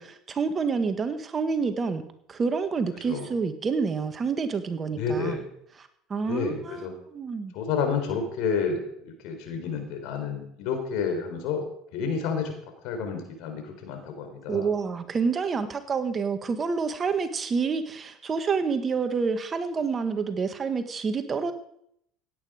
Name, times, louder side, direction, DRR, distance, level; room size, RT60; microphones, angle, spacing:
voice 1, 0.0-5.4 5.8-6.8 7.1-7.5 14.5-21.5, right 5 dB, 35° right, 9 dB, 1.5 m, -28 dB
voice 2, 5.0-5.5 6.2-6.9 7.5-11.6 11.9-12.5 12.8-14.7, left 5 dB, 65° left, 5 dB, 3.8 m, -30 dB
16.5 x 9.1 x 5.0 m, 0.72 s
hypercardioid pair, 75°, 0 cm